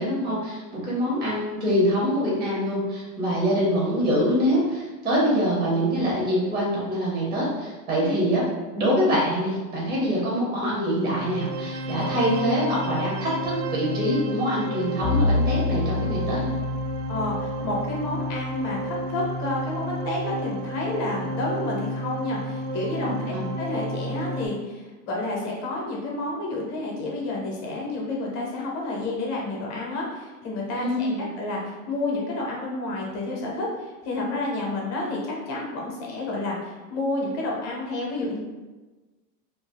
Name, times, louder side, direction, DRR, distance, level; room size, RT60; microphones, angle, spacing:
voice 1, 0.0-8.4 8.7-16.5 23.0-23.5 30.7-31.2, equal, 10° right, -5 dB, 0.4 m, -24 dB
sound 1, 10.9-24.5, right 1 dB, 80° right, 0.6 m, -31 dB
Bowed string instrument, 15.0-19.2, left 3 dB, 90° left, 0.7 m, -28 dB
voice 2, 17.1-38.4, left 2 dB, 35° left, -2 dB, 0.8 m, -30 dB
2.6 x 2.2 x 3.4 m, 1.2 s
supercardioid pair, 145°, 48 cm